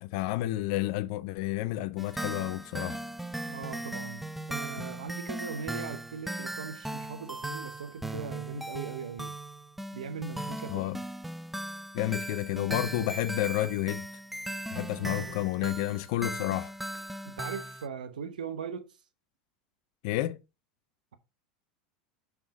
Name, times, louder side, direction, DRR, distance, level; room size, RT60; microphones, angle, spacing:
voice 1, 0.0-3.0 10.7-11.0 11.9-14.1 14.7-16.7 20.0-20.4, left 16 dB, 65° left, 0.6 m, -30 dB
sound 1, 2.0-17.9, right 1 dB, 5° right, 0.4 m, -38 dB
voice 2, 3.5-4.2 4.5-9.4 9.9-10.9 15.0-15.3 17.2-19.0, right 6 dB, 85° right, 0.9 m, -40 dB
sound 2, 8.1-10.5 13.0-16.0, right 4 dB, 50° right, 3.5 m, -54 dB
5.6 x 4.8 x 4.9 m
hypercardioid pair, 95°, 4 cm